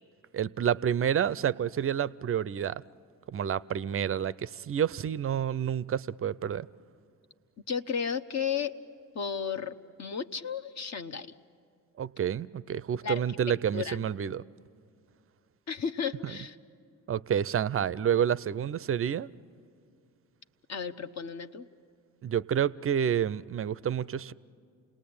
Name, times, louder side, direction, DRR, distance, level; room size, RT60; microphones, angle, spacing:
voice 1, 0.3-2.8 3.3-6.7 12.0-14.4 17.1-19.3 22.2-24.3, right 9 dB, 35° right, 0.5 m, -29 dB
voice 2, 7.7-8.7 9.1-11.3 13.0-13.2 13.7-14.0 15.7-16.6 20.7-21.7, left 6 dB, 40° left, 0.9 m, -33 dB
29.0 x 19.0 x 8.7 m
hypercardioid pair, 50°, 40 cm